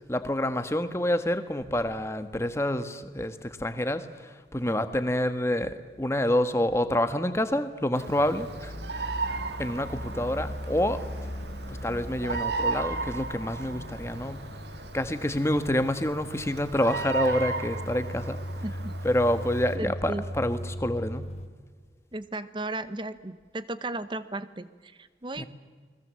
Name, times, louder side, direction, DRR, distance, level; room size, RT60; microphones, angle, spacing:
voice 1, 0.1-9.2 9.6-11.0 11.7-14.4 14.9-18.4 19.0-21.2 25.4-25.5, left 1 dB, 15° left, 10 dB, 1.3 m, -28 dB
Bird vocalization bird call bird song, 7.9-19.8, right 4 dB, 75° right, 1.7 m, -36 dB
sound 1, 8.2-21.5, equal, 35° left, 1.4 m, -38 dB
voice 2, 18.6-18.9 19.8-20.2 22.1-25.4, right 2 dB, 25° right, 13 dB, 0.9 m, -35 dB
29.5 x 21.0 x 7.6 m, 1.5 s
head